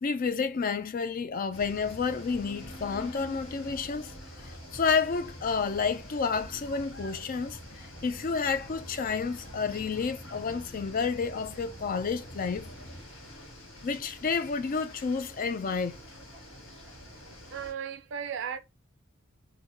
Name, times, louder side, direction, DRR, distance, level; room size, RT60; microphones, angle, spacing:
voice 1, 0.0-4.1 4.4-12.7 13.8-16.0, left 5 dB, 45° left, 0.4 m, -30 dB
sound 1, 1.5-17.7, left 1 dB, 70° left, 1.8 m, -48 dB
sound 2, 1.5-13.0, equal, 25° left, 1.3 m, -47 dB
voice 2, 17.5-18.6, right 7 dB, 60° right, 0.4 m, -35 dB
3.9 x 2.2 x 2.9 m
head